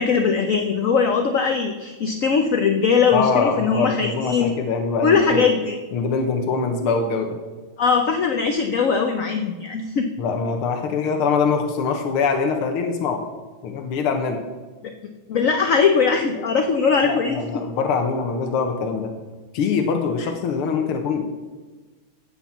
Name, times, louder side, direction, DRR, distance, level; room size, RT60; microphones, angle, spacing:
voice 1, 0.0-4.5 5.0-5.8 7.8-10.1 15.3-17.4 20.2-20.3, left 5 dB, 60° left, 5 dB, 0.9 m, -20 dB
voice 2, 3.1-5.5 5.9-7.4 10.2-13.2 13.6-14.4 17.0-19.1 19.5-21.3, left 5 dB, 85° left, 4 dB, 2.0 m, -23 dB
15.5 x 6.0 x 7.3 m, 1.3 s
omnidirectional pair, 2.4 m